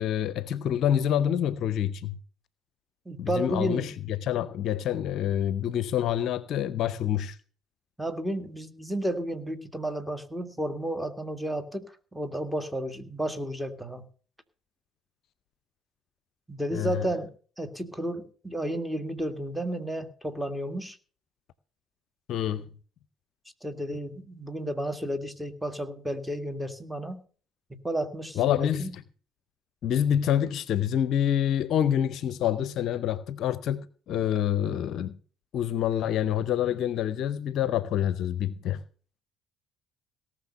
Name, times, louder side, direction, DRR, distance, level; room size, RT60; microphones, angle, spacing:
voice 1, 0.0-2.2 3.2-7.4 16.7-17.1 22.3-22.7 28.4-29.0 29.8-35.1 35.5-38.8, left 10 dB, 55° left, 0.6 m, -27 dB
voice 2, 3.1-3.9 8.0-11.9 12.1-14.0 16.5-17.3 17.6-21.0 23.6-27.2 27.8-28.9, right 1 dB, 5° right, 2.0 m, -32 dB
18.0 x 6.5 x 6.8 m
figure-of-eight pair, 55°, 0 cm